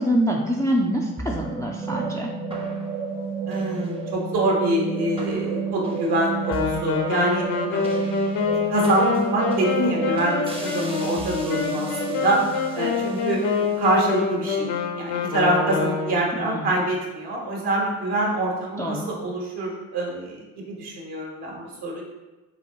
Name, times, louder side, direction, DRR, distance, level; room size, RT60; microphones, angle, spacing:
voice 1, 0.0-2.3 16.3-16.7 18.8-19.1, equal, 10° left, -1 dB, 0.3 m, -25 dB
sound 1, 1.2-15.6, right 4 dB, 10° right, 0.7 m, -31 dB
voice 2, 3.5-8.0 8.5-12.4 12.7-22.0, right 1 dB, 60° right, -1 dB, 1.2 m, -25 dB
Wind instrument woodwind instrument, 6.4-16.3, left 6 dB, 65° left, 0.7 m, -26 dB
3.9 x 2.6 x 3.7 m, 1.2 s
figure-of-eight pair, 50°, 46 cm